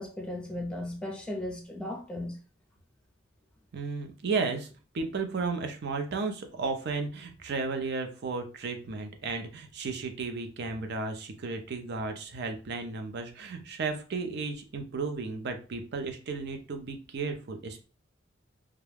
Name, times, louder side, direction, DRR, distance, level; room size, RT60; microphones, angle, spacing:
voice 1, 0.0-2.4, left 1 dB, 5° left, 0.6 m, -36 dB
voice 2, 3.7-4.7 4.9-17.8, right 4 dB, 55° right, 0.5 m, -34 dB
2.3 x 2.1 x 3.2 m
head